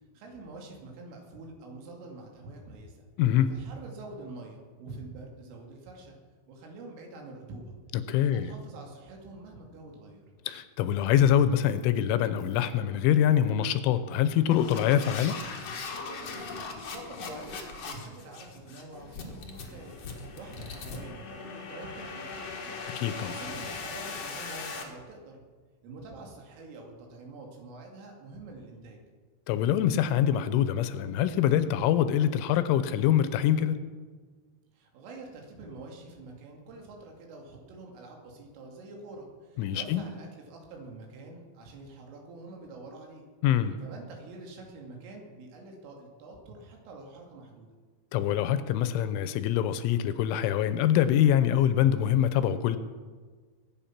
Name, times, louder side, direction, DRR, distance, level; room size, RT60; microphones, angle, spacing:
voice 1, 0.1-3.1 3.5-6.2 6.5-7.8 8.2-10.3 16.5-20.0 20.3-22.8 23.3-25.4 25.8-29.0 34.7-43.3 43.8-47.7, right 2 dB, 80° right, 1 dB, 5.0 m, -46 dB
voice 2, 3.2-3.5 7.9-8.5 10.5-15.4 22.9-23.4 29.5-33.8 39.6-40.0 43.4-43.8 48.1-52.8, left 10 dB, 80° left, 12 dB, 3.1 m, -24 dB
sound 1, 11.1-11.3 11.6-11.9 12.4-12.7 13.2-13.5 14.1-24.8, left 4 dB, 65° left, 1.6 m, -39 dB
22.0 x 9.0 x 5.9 m, 1.5 s
omnidirectional pair, 5.7 m